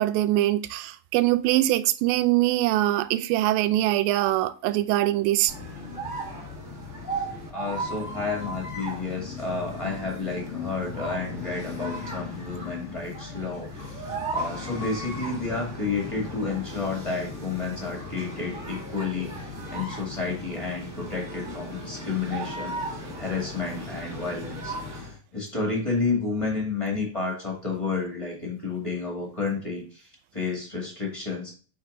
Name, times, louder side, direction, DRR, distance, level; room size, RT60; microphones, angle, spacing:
voice 1, 0.0-5.5, right 15 dB, 85° right, 2.3 m, -23 dB
sound 1, 5.5-25.2, equal, 15° right, 2.0 m, -36 dB
voice 2, 7.5-22.7 23.2-31.5, left 4 dB, 15° left, 1.3 m, -31 dB
sound 2, 7.9-13.0, left 6 dB, 90° left, 2.7 m, -40 dB
7.1 x 5.1 x 2.6 m
omnidirectional pair, 4.2 m